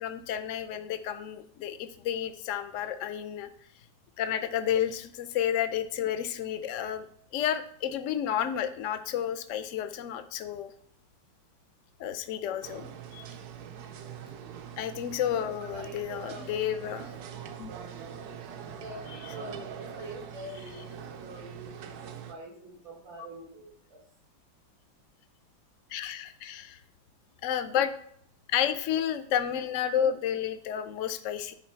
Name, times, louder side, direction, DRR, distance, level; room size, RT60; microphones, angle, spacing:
voice 1, 0.0-3.5 4.2-7.0 7.3-10.7 12.0-13.3 14.8-17.1 17.6-17.7 19.2-19.3 25.9-26.8 27.4-27.9 28.5-31.5, left 9 dB, 75° left, 10 dB, 0.7 m, -31 dB
sound 1, 12.6-22.3, right 8 dB, 65° right, 1.1 m, -43 dB
voice 2, 15.3-16.6 18.8-24.0, right 1 dB, 85° right, 0 dB, 2.7 m, -45 dB
10.0 x 3.8 x 4.4 m, 0.66 s
omnidirectional pair, 2.0 m